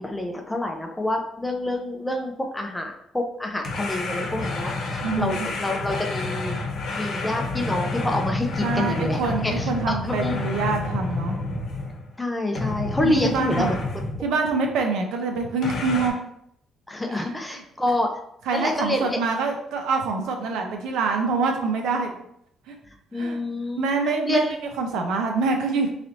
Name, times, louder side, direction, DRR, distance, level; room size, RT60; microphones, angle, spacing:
voice 1, 0.0-6.6 7.0-10.3 12.2-13.8 16.9-18.1 18.5-19.2 23.1-24.5, left 1 dB, 10° left, 3 dB, 0.6 m, -27 dB
sound 1, 3.6-12.1 12.5-14.3 15.6-16.1, left 2 dB, 60° left, 0.9 m, -29 dB
voice 2, 5.0-5.5 8.6-11.4 13.0-13.8 14.2-16.1 17.1-17.6 18.5-22.1 22.7-22.8 23.1-23.4 23.8-24.5 24.8-25.9, right 4 dB, 80° right, 3 dB, 0.6 m, -25 dB
3.2 x 2.8 x 3.9 m, 0.73 s
cardioid pair, 105°, 0 cm